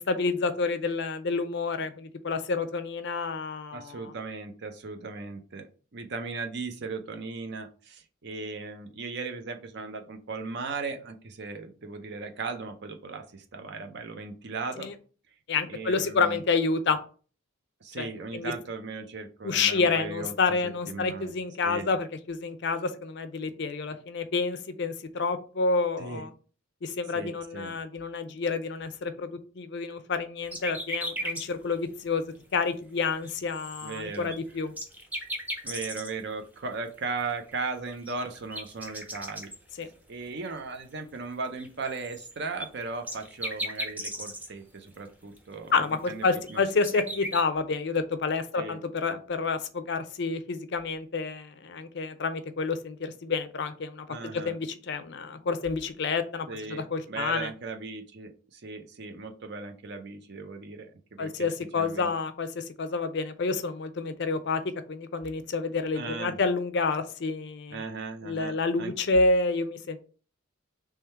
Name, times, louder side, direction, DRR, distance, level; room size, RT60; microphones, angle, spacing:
voice 1, 0.0-4.1 14.8-14.9 15.5-17.0 18.0-18.5 19.4-26.3 26.8-32.2 32.5-34.7 39.8-39.9 45.7-54.1 54.4-57.5 61.2-64.6 64.9-67.8 68.2-70.0, left 4 dB, 55° left, 0.5 m, -29 dB
voice 2, 3.7-14.9 15.7-16.4 17.8-21.3 21.6-21.9 26.0-26.3 27.1-27.8 33.8-34.3 35.6-39.5 40.1-46.6 48.5-48.8 54.1-54.6 56.5-61.5 61.7-62.1 65.9-66.4 67.7-68.9, right 4 dB, 55° right, 0.6 m, -37 dB
sound 1, 30.5-31.4 31.9-32.0 32.5-32.6 32.9-33.0 33.2-36.2 37.5-37.6 37.9-39.8 40.2-40.3 41.6-44.5 44.9-45.0 45.4-45.5 46.0-47.4, equal, 10° right, 0.6 m, -36 dB
3.7 x 3.2 x 4.4 m
head